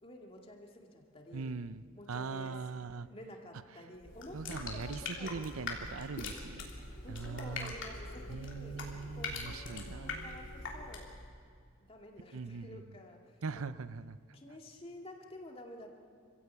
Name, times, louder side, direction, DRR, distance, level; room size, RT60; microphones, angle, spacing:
voice 1, 0.0-1.6 2.0-2.6 2.9-6.0 6.7-8.8 9.1-11.1 11.8-13.6 14.3-15.9, left 1 dB, 25° left, 1 dB, 2.4 m, -51 dB
voice 2, 1.3-3.1 4.3-6.7 7.1-7.7 8.3-10.4 12.3-12.8 13.4-14.2, right 4 dB, 85° right, 14 dB, 0.6 m, -41 dB
sound 1, 4.0-11.2, left 3 dB, 60° left, 3.3 m, -43 dB
27.0 x 16.0 x 8.5 m, 2.2 s
head